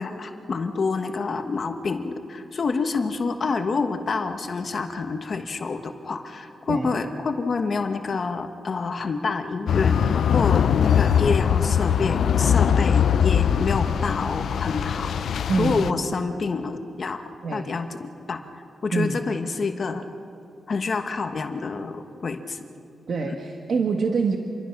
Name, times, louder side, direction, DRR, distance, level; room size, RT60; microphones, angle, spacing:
voice 1, 0.0-15.1 15.6-17.2 17.5-18.4 18.8-20.0 20.7-22.6 23.2-23.4, left 4 dB, 45° left, 6 dB, 1.2 m, -27 dB
sound 1, 9.7-15.9, left 8 dB, 70° left, 0.5 m, -21 dB
voice 2, 15.5-15.9 17.4-17.8 18.9-19.2 23.1-24.4, right 4 dB, 60° right, 2 dB, 1.5 m, -25 dB
26.5 x 22.5 x 6.0 m, 2.6 s
wide cardioid pair, 130°, 0 cm